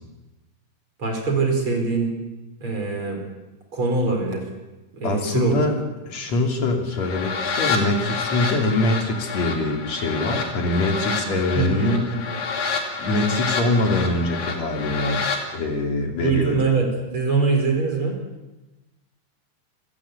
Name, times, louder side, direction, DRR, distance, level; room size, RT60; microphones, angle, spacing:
voice 1, 1.0-2.1 2.6-3.2 3.7-4.4 4.9-5.6 11.6-12.2 16.2-16.9 17.1-18.2, right 4 dB, 30° right, 2 dB, 4.8 m, -23 dB
voice 2, 5.0-12.0 13.0-15.3 15.5-16.6, left 2 dB, 40° left, 2 dB, 3.5 m, -23 dB
sound 1, 6.9-15.4, left 4 dB, 65° left, 4.5 m, -28 dB
27.5 x 15.5 x 8.3 m, 1.1 s
omnidirectional pair, 5.3 m